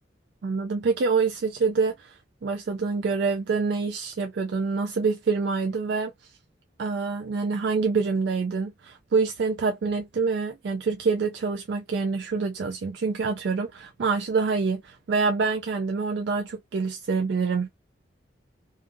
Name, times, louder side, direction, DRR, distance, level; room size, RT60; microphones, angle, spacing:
voice 1, 0.4-6.1 6.8-17.7, right 4 dB, 70° right, 0.4 m, -26 dB
2.5 x 2.4 x 2.6 m
head